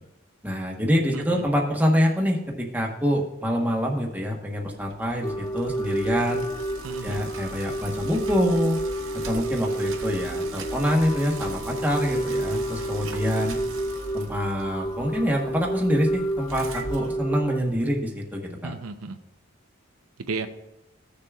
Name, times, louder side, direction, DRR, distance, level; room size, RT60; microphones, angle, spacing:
voice 1, 0.4-6.4 7.0-8.8 9.3-13.6 14.1-18.7, equal, 10° right, -1 dB, 1.1 m, -25 dB
voice 2, 1.1-1.5 6.8-7.3 18.6-19.2 20.2-20.5, right 4 dB, 90° right, 8 dB, 0.7 m, -34 dB
Bicycle, 4.7-17.8, right 3 dB, 65° right, 1.0 m, -40 dB
sound 1, 5.2-17.6, right 1 dB, 20° left, 0.3 m, -30 dB
15.5 x 6.7 x 2.4 m, 0.96 s
head